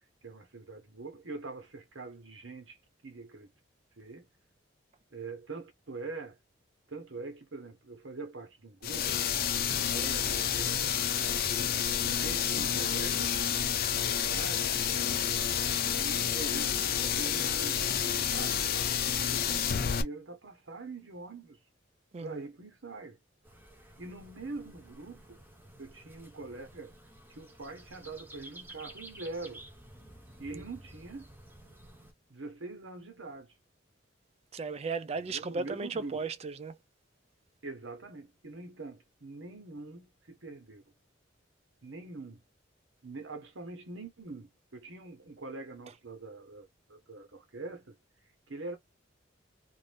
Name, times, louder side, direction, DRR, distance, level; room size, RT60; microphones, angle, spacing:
voice 1, 0.2-2.8 3.0-3.5 4.0-4.3 5.1-6.4 6.9-9.1 9.5-10.8 12.0-13.6 13.9-14.7 15.9-21.6 22.2-23.2 24.0-25.4 25.8-26.9 27.3-29.6 30.4-31.3 32.3-33.5 35.3-36.2 37.6-40.8 41.8-42.4 43.0-47.9 48.5-48.8, right 3 dB, 85° right, 1.1 m, -44 dB
sound 1, 8.8-20.0, left 8 dB, 50° left, 0.5 m, -29 dB
voice 2, 22.1-22.5 30.5-30.6 34.5-36.8, right 4 dB, 35° right, 0.4 m, -36 dB
sound 2, 23.4-32.1, right 1 dB, 10° right, 0.7 m, -52 dB
2.6 x 2.5 x 3.4 m
head